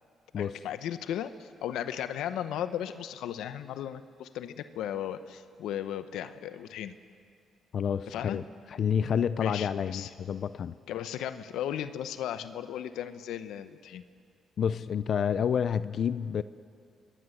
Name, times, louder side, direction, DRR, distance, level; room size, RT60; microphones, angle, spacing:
voice 1, 0.4-6.9 8.1-8.4 9.4-10.1 10.9-14.0, left 10 dB, 85° left, 11 dB, 0.9 m, -36 dB
voice 2, 7.7-8.4 8.7-10.7 14.6-16.4, left 7 dB, 60° left, 15 dB, 0.6 m, -29 dB
26.5 x 21.0 x 8.0 m, 2.3 s
cardioid pair, 90°, 0 cm